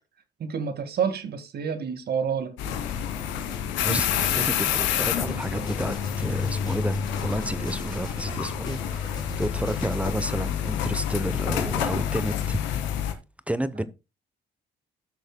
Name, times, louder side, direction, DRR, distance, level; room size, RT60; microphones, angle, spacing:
voice 1, 0.4-2.7, right 7 dB, 60° right, 1.8 m, -29 dB
sound 1, 2.6-13.1, left 9 dB, 85° left, 1.5 m, -28 dB
voice 2, 3.8-12.9 13.5-13.8, right 1 dB, 5° right, 0.8 m, -31 dB
sound 2, 4.2-10.2, equal, 20° left, 3.3 m, -41 dB
15.0 x 6.4 x 2.2 m
supercardioid pair, 70°, 19 cm